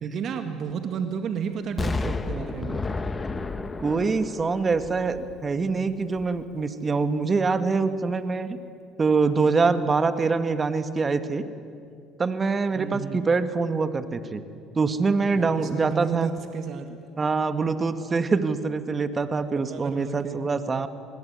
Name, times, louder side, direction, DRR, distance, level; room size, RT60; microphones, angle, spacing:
voice 1, 0.0-2.9 12.8-13.3 15.3-17.0 19.5-20.4, right 6 dB, 55° right, 7 dB, 2.1 m, -33 dB
Explosion, 1.8-5.7 6.2-6.3, left 3 dB, 25° left, 1.7 m, -31 dB
voice 2, 3.8-8.6 9.0-11.5 12.2-14.4 14.8-16.3 17.2-20.9, right 4 dB, 30° right, 10 dB, 1.9 m, -24 dB
27.0 x 20.0 x 9.6 m, 2.3 s
hypercardioid pair, 65°, 0 cm